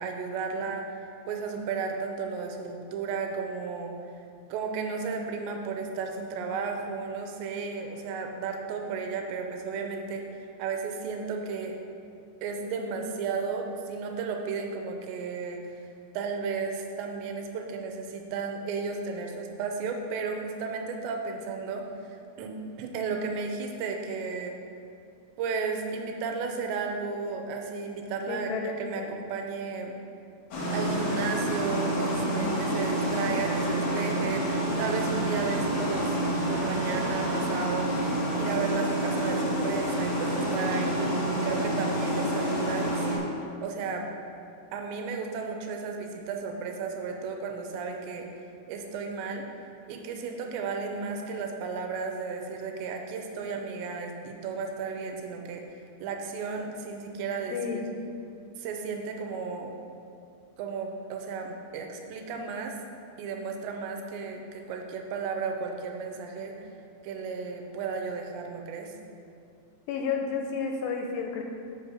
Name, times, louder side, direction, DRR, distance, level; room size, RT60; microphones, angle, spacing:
voice 1, 0.0-4.0 4.5-11.7 12.4-15.8 16.1-24.6 25.4-30.0 30.7-36.2 36.5-38.0 38.4-44.1 44.7-48.3 48.7-49.5 49.9-57.8 58.6-59.7 60.6-62.8 63.2-66.7 67.0-68.9, right 5 dB, 85° right, 3 dB, 2.9 m, -34 dB
voice 2, 28.3-29.2 32.2-32.6 57.5-57.9 69.9-71.4, left 5 dB, 80° left, 3 dB, 2.6 m, -32 dB
sound 1, 30.5-43.2, right 1 dB, 55° left, 1.9 m, -28 dB
7.7 x 5.4 x 6.1 m, 2.6 s
omnidirectional pair, 5.1 m